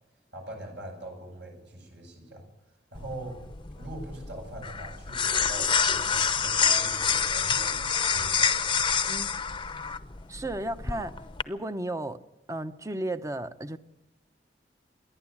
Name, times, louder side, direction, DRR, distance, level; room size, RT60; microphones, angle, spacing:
voice 1, 0.3-2.4 2.9-3.4 3.8-8.8, right 1 dB, 70° right, 7.7 m, -42 dB
sound 1, 2.9-11.4, left 6 dB, 25° left, 0.8 m, -27 dB
voice 2, 10.3-11.2 11.5-12.2 12.5-13.8, right 1 dB, 20° right, 0.9 m, -33 dB
27.5 x 11.5 x 8.6 m
head